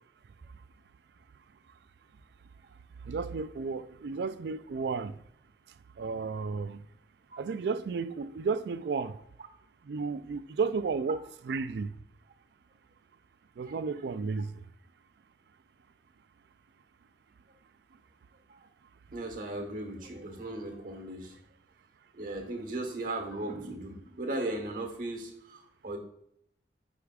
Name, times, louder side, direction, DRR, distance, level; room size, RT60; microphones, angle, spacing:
voice 1, 3.0-5.1 6.0-6.8 7.4-9.1 9.9-11.9 13.6-14.6, right 4 dB, 65° right, 0.3 m, -33 dB
voice 2, 19.1-21.4 22.1-26.0, right 2 dB, 50° right, 1.2 m, -37 dB
8.1 x 4.9 x 2.4 m
head